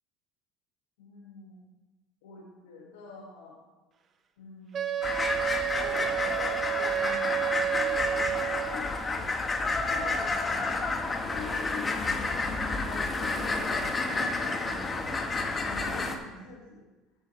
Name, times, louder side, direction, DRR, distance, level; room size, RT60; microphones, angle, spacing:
voice 1, 1.0-1.6 2.2-3.6 4.4-5.1 5.6-9.4 9.8-12.5 12.8-15.3 15.6-16.8, left 3 dB, 90° left, -3 dB, 1.8 m, -45 dB
Wind instrument woodwind instrument, 4.7-8.9, right 10 dB, 45° right, 1.0 m, -30 dB
sound 1, 5.0-16.2, left 3 dB, 25° left, 1.3 m, -30 dB
15.0 x 7.9 x 3.2 m, 1.2 s
supercardioid pair, 90°, 0 cm